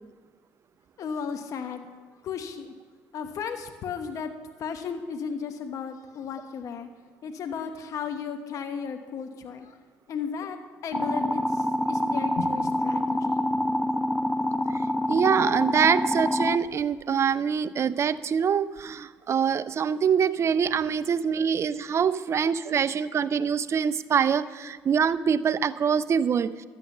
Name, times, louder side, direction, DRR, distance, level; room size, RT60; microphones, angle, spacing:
voice 1, 1.0-1.9 2.2-2.7 3.1-4.3 4.6-6.9 7.2-9.8 10.1-13.6 21.9-22.1, left 6 dB, 60° left, 7 dB, 1.1 m, -34 dB
sound 1, 10.9-16.6, left 1 dB, 5° left, 0.7 m, -26 dB
voice 2, 14.7-26.5, right 7 dB, 45° right, 14 dB, 0.6 m, -24 dB
12.0 x 9.1 x 6.7 m, 1.5 s
supercardioid pair, 70°, 6 cm